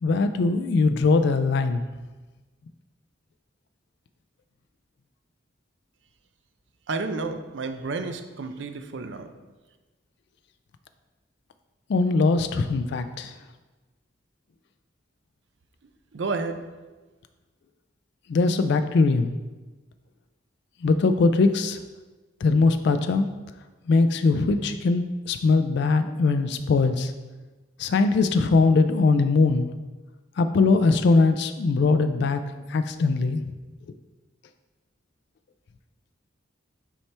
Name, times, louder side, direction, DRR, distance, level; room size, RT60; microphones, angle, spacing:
voice 1, 0.0-1.8 11.9-13.4 18.3-19.3 20.8-21.8 22.4-23.3 23.9-27.1 27.8-29.7 30.4-32.4 32.7-33.4, left 3 dB, 65° left, 9 dB, 0.3 m, -21 dB
voice 2, 6.9-9.3 15.8-16.7, right 3 dB, 70° right, 8 dB, 0.5 m, -31 dB
7.1 x 4.4 x 3.3 m, 1.2 s
head